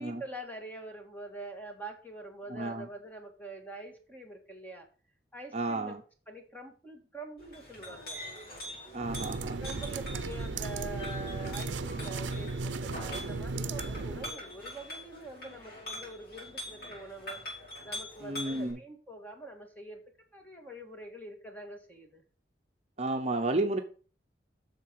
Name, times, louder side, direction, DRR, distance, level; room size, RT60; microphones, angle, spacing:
voice 1, 0.0-4.9 5.3-5.9 6.3-8.2 9.6-17.4 17.9-20.0 20.3-22.2, right 2 dB, 10° left, 2 dB, 1.8 m, -45 dB
voice 2, 2.5-2.9 5.5-6.0 8.9-9.6 18.2-18.8 23.0-23.8, right 2 dB, 35° right, 4 dB, 0.8 m, -32 dB
Chink clink, 7.4-18.7, left 1 dB, 55° left, 5.5 m, -44 dB
sound 1, 9.0-14.3, right 3 dB, 90° right, 0.6 m, -36 dB
8.1 x 6.7 x 5.6 m, 0.40 s
head